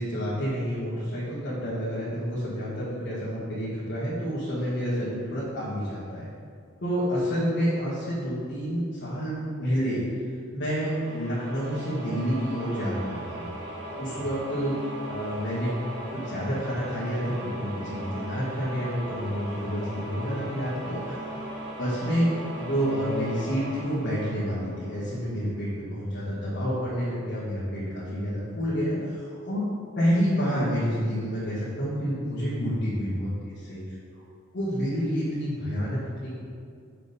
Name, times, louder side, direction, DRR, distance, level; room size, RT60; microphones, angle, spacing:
voice 1, 0.0-6.3 6.8-10.2 10.5-13.5 14.0-15.7 16.1-21.4 21.8-22.3 22.6-29.7 29.9-33.8 34.5-36.4, equal, 50° left, -11 dB, 1.6 m, -29 dB
sound 1, 10.8-25.4, right 1 dB, 50° right, 1.3 m, -38 dB
6.4 x 4.2 x 5.1 m, 2.3 s
head